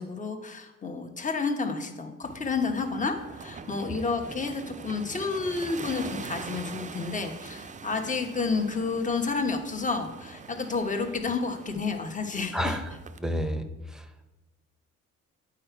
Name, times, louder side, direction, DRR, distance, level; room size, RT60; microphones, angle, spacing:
voice 1, 0.0-12.8, left 4 dB, 25° left, 5 dB, 1.1 m, -30 dB
sound 1, 2.2-13.2, right 5 dB, 25° right, 0.5 m, -43 dB
voice 2, 12.5-12.8 13.2-14.2, equal, ahead, 7 dB, 0.8 m, -31 dB
8.6 x 4.9 x 4.5 m, 1.1 s
cardioid pair, 90°, 30 cm